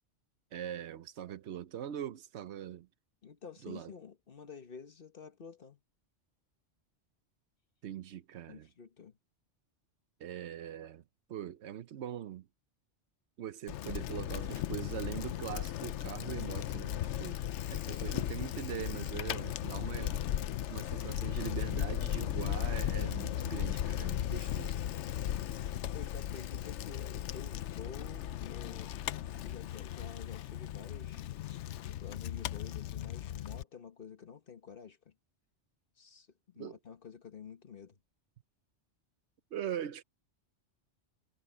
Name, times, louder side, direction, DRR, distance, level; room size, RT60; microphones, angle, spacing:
voice 1, 0.5-2.9 3.6-3.9 7.8-8.7 10.2-11.0 11.3-12.5 13.4-17.4 17.7-20.2 20.7-24.7 36.6-36.8 39.5-40.0, right 10 dB, 70° right, 1.0 m, -42 dB
voice 2, 3.2-5.8 8.5-9.2 17.8-18.4 25.9-28.9 29.4-31.6 32.0-35.1 36.0-38.0, left 6 dB, 50° left, 1.3 m, -50 dB
Bicycle, 13.7-33.6, left 11 dB, 80° left, 0.9 m, -36 dB
omnidirectional pair, 1.2 m